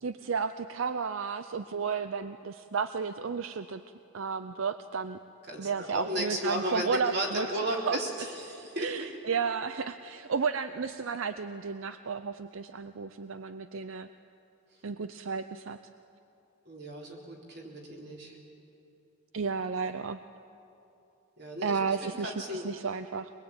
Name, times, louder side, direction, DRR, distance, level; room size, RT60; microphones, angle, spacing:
voice 1, 0.0-3.8 4.1-5.2 5.6-8.0 8.8-14.1 14.8-15.8 19.3-20.2 21.6-23.3, right 5 dB, 85° right, 11 dB, 0.6 m, -33 dB
voice 2, 5.5-9.1 16.7-18.4 21.4-22.7, right 1 dB, 55° right, -1 dB, 4.0 m, -34 dB
23.5 x 21.0 x 8.9 m, 2.8 s
head